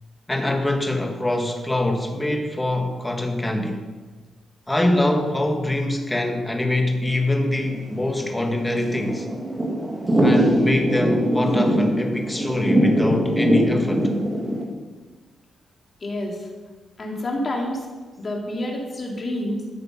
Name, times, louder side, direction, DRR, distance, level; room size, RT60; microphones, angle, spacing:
voice 1, 0.3-3.8 4.7-9.3 10.2-14.1, left 1 dB, 10° left, 4 dB, 1.2 m, -23 dB
Thunder / Rain, 7.6-14.6, equal, 15° right, 1.9 m, -22 dB
voice 2, 16.0-16.5 17.0-17.8 18.2-19.6, left 1 dB, 30° left, 0 dB, 2.2 m, -28 dB
12.5 x 7.7 x 5.9 m, 1.3 s
wide cardioid pair, 165°, 0 cm